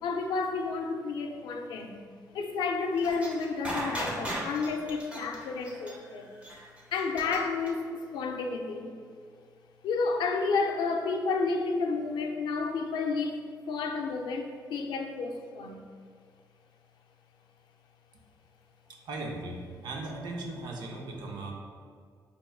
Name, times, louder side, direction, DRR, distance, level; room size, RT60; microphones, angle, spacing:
voice 1, 0.0-2.0 2.3-6.3 6.9-9.0 9.8-13.4 13.7-15.8, left 4 dB, 90° left, 3 dB, 0.4 m, -31 dB
sound 1, 3.0-7.7, equal, 15° right, 0.7 m, -36 dB
voice 2, 18.9-21.5, right 2 dB, 75° right, 0 dB, 0.5 m, -38 dB
4.3 x 2.9 x 2.3 m, 2.1 s
cardioid pair, 140°, 7 cm